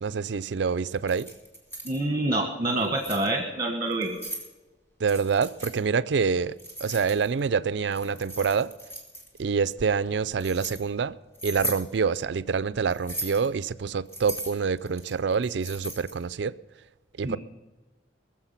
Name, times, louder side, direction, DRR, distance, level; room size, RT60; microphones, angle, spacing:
voice 1, 0.0-1.3 5.0-6.5 6.8-8.7 9.4-11.2 11.4-16.5 17.2-17.4, right 5 dB, 65° right, 0.4 m, -26 dB
Keys jangling, 0.9-2.0 2.7-3.3 3.9-4.5 5.1-5.7 6.6-7.5 7.9-9.4 10.0-10.8 11.3-11.8 12.9-13.5 14.1-16.2, equal, 15° left, 2.7 m, -37 dB
voice 2, 1.8-4.2 17.2-17.4, right 2 dB, 30° right, 1.5 m, -27 dB
21.5 x 7.4 x 5.8 m
head